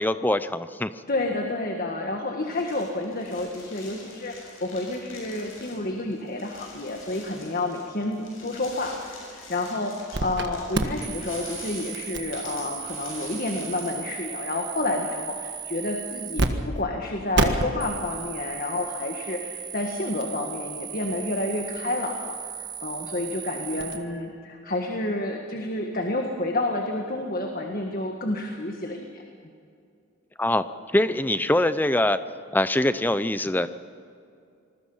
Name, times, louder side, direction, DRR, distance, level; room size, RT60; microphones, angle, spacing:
voice 1, 0.0-0.9 30.4-30.6 30.9-32.2 32.5-33.7, left 1 dB, 10° left, 12 dB, 0.6 m, -23 dB
voice 2, 1.1-29.2, left 2 dB, 45° left, 2 dB, 1.7 m, -30 dB
sound 1, 2.5-14.0, left 3 dB, 80° left, 7.3 m, -46 dB
sound 2, 10.1-10.5 10.7-16.5 16.7-16.8 17.3-24.0, right 3 dB, 55° right, 1.5 m, -32 dB
27.0 x 20.5 x 5.7 m, 2.4 s
head